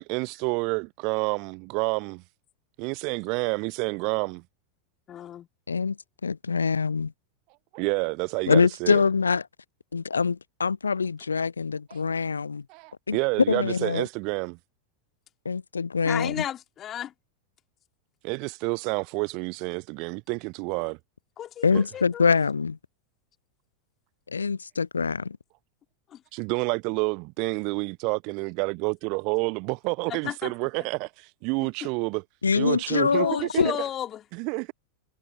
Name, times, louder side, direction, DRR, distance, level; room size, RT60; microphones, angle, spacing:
voice 1, 0.0-2.2 2.8-4.4 7.7-9.0 12.7-14.6 18.2-21.0 21.7-21.8 26.3-32.2 32.5-33.8 34.3-34.7, right 31 dB, 45° right, 0.7 m, -29 dB
voice 2, 5.1-5.5 16.0-17.1 21.4-22.3 26.1-26.2 30.1-30.5 33.1-34.2, left 11 dB, 30° left, 3.2 m, -34 dB
voice 3, 6.2-7.1 8.5-9.5 9.9-12.6 13.1-13.2 13.5-14.0 15.4-16.4 21.6-22.8 24.3-25.4 32.4-33.7, left 5 dB, 75° left, 0.5 m, -24 dB
figure-of-eight pair, 90°, 0 cm